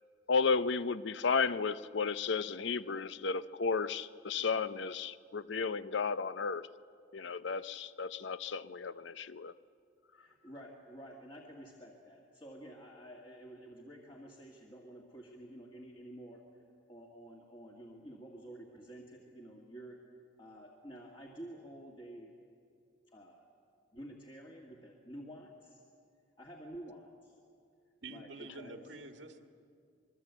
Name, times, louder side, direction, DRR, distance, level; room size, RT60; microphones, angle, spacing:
voice 1, 0.3-6.7 7.1-9.5, left 5 dB, 65° left, 14 dB, 0.6 m, -33 dB
voice 2, 10.1-16.6 16.9-20.0 20.4-22.4 23.1-23.5 23.9-25.9 26.4-27.4 28.1-29.0, right 1 dB, 25° left, -1 dB, 1.8 m, -50 dB
voice 3, 28.0-29.4, right 2 dB, 70° right, 4 dB, 1.6 m, -47 dB
25.5 x 22.0 x 8.1 m, 2.4 s
head